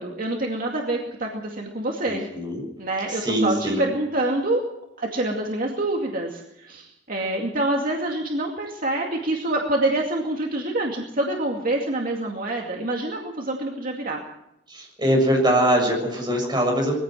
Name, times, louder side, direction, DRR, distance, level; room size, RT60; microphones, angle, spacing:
voice 1, 0.0-2.3 2.8-4.6 5.0-14.2, right 2 dB, 50° right, 1 dB, 2.3 m, -26 dB
voice 2, 2.0-2.6 3.1-3.9 14.7-17.0, right 1 dB, 25° right, 1 dB, 7.0 m, -22 dB
21.5 x 15.5 x 7.6 m, 0.85 s
head